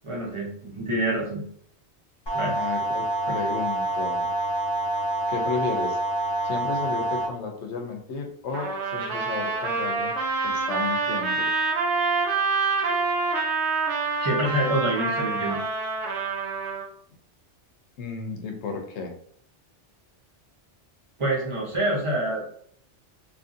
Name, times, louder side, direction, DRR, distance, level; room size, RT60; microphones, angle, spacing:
voice 1, 0.0-1.4 2.3-2.6 3.3-3.4 14.2-15.6 21.2-22.4, right 1 dB, 30° right, -3 dB, 0.8 m, -26 dB
sound 1, 2.3-7.3, right 1 dB, 30° left, 0.6 m, -27 dB
voice 2, 2.5-4.3 5.3-6.0 6.4-10.1 10.4-11.5 18.0-19.2, left 4 dB, 75° left, 3 dB, 0.9 m, -33 dB
Trumpet, 8.5-16.9, right 4 dB, 70° right, 1.0 m, -26 dB
2.8 x 2.6 x 2.5 m, 0.62 s
omnidirectional pair, 1.2 m